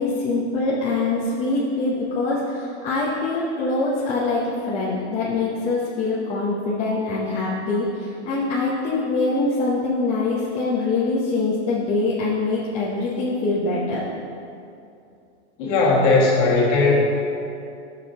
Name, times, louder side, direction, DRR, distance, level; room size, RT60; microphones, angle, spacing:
voice 1, 0.0-14.0, left 3 dB, 20° left, -8 dB, 0.8 m, -24 dB
voice 2, 15.6-16.9, left 3 dB, 35° left, -4 dB, 1.9 m, -17 dB
12.0 x 6.5 x 2.9 m, 2.6 s
supercardioid pair, 160°, 36 cm